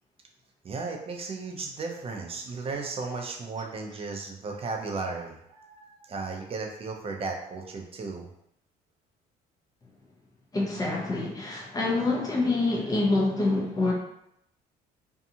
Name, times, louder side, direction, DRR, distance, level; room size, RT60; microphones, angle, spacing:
voice 1, 0.6-8.3, right 4 dB, 35° right, 1 dB, 0.6 m, -35 dB
voice 2, 10.5-13.9, left 2 dB, 20° left, -3 dB, 0.8 m, -26 dB
2.7 x 2.3 x 2.7 m, 0.76 s
cardioid pair, 110°, 17 cm